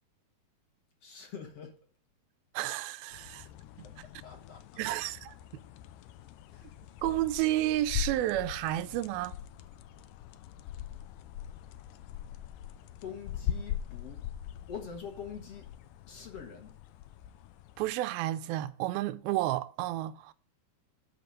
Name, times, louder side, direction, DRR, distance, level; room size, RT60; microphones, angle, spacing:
voice 1, 1.0-1.8 3.8-5.1 6.5-6.7 13.0-14.2 14.7-15.8 16.0-16.7, left 7 dB, 50° left, 2.1 m, -45 dB
voice 2, 2.5-3.5 3.8-3.9 4.8-5.3 7.0-9.4 17.8-20.3, right 15 dB, 90° right, 2.5 m, -31 dB
sound 1, 3.1-17.9, left 11 dB, 80° left, 2.0 m, -42 dB
12.5 x 5.1 x 5.2 m
omnidirectional pair, 4.2 m